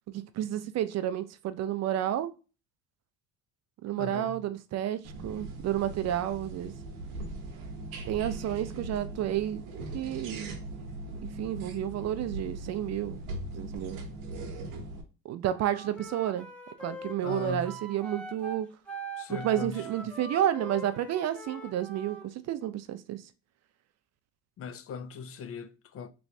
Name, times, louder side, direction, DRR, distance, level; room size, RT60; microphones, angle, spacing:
voice 1, 0.1-2.3 3.8-6.7 8.1-9.6 9.9-10.5 11.4-13.2 13.5-14.0 15.2-16.5 16.8-18.7 19.3-23.2, right 11 dB, 45° right, 0.4 m, -31 dB
voice 2, 4.0-4.5 17.2-17.8 19.2-20.1 24.6-26.1, left 5 dB, 40° left, 0.4 m, -39 dB
sound 1, 5.0-15.0, right 2 dB, 75° right, 0.9 m, -40 dB
Wind instrument woodwind instrument, 15.5-22.3, right 1 dB, 5° left, 1.0 m, -43 dB
3.1 x 3.0 x 2.7 m
supercardioid pair, 75°, 37 cm